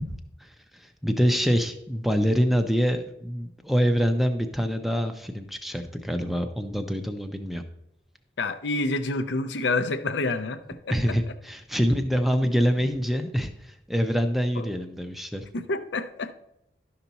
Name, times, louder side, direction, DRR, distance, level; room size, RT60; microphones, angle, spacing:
voice 1, 0.1-7.6 10.9-15.5, equal, ahead, 7 dB, 0.5 m, -25 dB
voice 2, 8.4-10.9 14.6-14.7 15.5-16.3, left 2 dB, 85° left, 10 dB, 0.6 m, -28 dB
11.5 x 5.8 x 4.0 m, 0.81 s
head